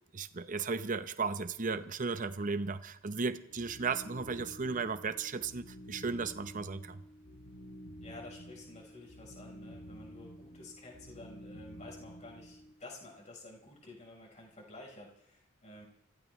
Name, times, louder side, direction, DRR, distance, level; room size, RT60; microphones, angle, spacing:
voice 1, 0.1-7.0, right 4 dB, 40° right, 11 dB, 0.8 m, -35 dB
sound 1, 3.5-12.7, equal, 75° left, 3.1 m, -50 dB
voice 2, 8.0-15.9, left 2 dB, 35° left, -1 dB, 4.2 m, -51 dB
25.0 x 16.0 x 3.2 m, 0.76 s
head